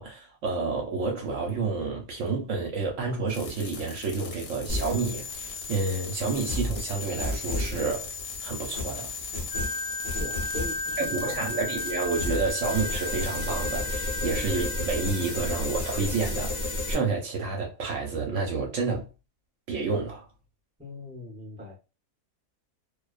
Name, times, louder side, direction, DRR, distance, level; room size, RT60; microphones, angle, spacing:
voice 1, 0.0-8.1 8.4-9.1 11.1-19.1 19.7-20.3, right 4 dB, 65° right, 0.9 m, -30 dB
sound 1, 3.3-14.0, left 5 dB, 70° left, 0.9 m, -43 dB
sound 2, 4.7-16.9, left 2 dB, 50° left, 0.5 m, -33 dB
Wind instrument woodwind instrument, 9.5-15.6, left 2 dB, 85° left, 1.1 m, -35 dB
voice 2, 10.2-11.4 20.8-21.8, left 1 dB, 10° right, 0.5 m, -40 dB
2.5 x 2.2 x 2.3 m
omnidirectional pair, 1.6 m